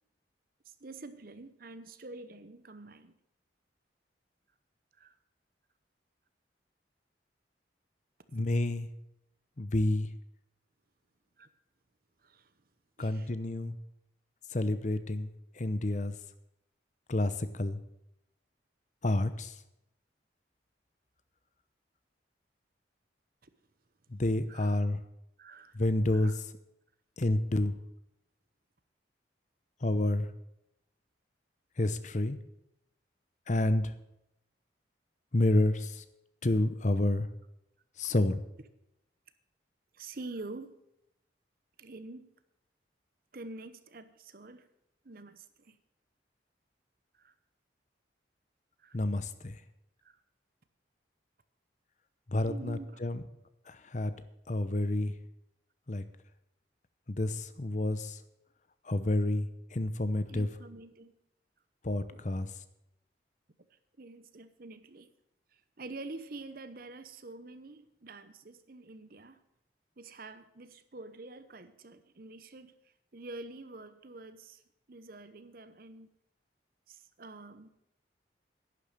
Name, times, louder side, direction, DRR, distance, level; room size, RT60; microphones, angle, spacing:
voice 1, 0.6-3.2 5.0-5.1 11.4-11.5 12.2-12.5 13.0-13.3 23.4-23.5 24.5-24.8 25.4-25.9 26.1-26.3 39.9-40.7 41.8-42.3 43.3-44.7 45.0-45.8 47.1-47.3 48.8-49.0 50.0-50.2 52.4-53.0 60.3-61.1 62.1-62.5 64.0-65.1 65.5-69.4 70.0-72.8 73.1-74.6 74.9-76.1 76.9-77.7, right 2 dB, 50° right, 0.9 m, -47 dB
voice 2, 8.3-8.9 9.6-10.1 13.0-13.8 14.5-15.3 15.5-16.1 17.1-17.8 19.0-19.6 24.1-25.0 25.7-26.4 27.2-27.7 29.8-30.3 31.8-32.4 33.5-33.9 35.3-36.0 36.4-37.3 38.0-38.4 48.9-49.6 52.3-53.2 53.7-54.1 54.5-55.1 55.9-56.0 57.1-58.2 58.8-60.5 61.8-62.5, left 1 dB, 40° left, 0.8 m, -29 dB
11.0 x 10.5 x 6.6 m
head